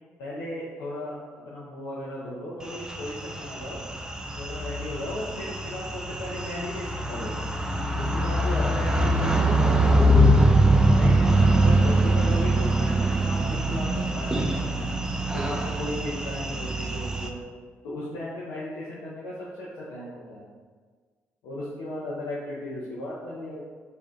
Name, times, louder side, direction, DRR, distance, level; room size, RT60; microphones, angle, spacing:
voice 1, 0.2-1.2 1.5-3.8 4.4-7.4 7.9-10.3 10.9-14.9 15.3-17.4 17.8-20.5 21.4-23.6, left 1 dB, 80° left, -8 dB, 0.5 m, -36 dB
sound 1, 2.7-17.3, right 1 dB, 10° right, 0.3 m, -23 dB
2.5 x 2.1 x 3.7 m, 1.5 s
hypercardioid pair, 50°, 6 cm